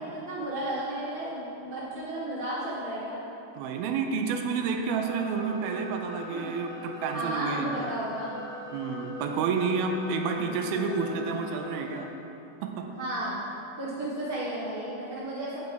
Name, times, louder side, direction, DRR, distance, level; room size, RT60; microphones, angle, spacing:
voice 1, 0.0-3.2 6.3-6.5 7.1-8.5 10.6-11.3 12.8-13.3 13.8-15.6, right 1 dB, 25° left, -11 dB, 1.1 m, -34 dB
voice 2, 3.6-7.8 8.7-12.1 12.6-12.9, right 5 dB, 90° right, 4 dB, 2.5 m, -30 dB
sound 1, 4.9-12.1, left 1 dB, 80° left, 2.7 m, -43 dB
8.1 x 7.6 x 4.6 m, 2.8 s
omnidirectional pair, 4.2 m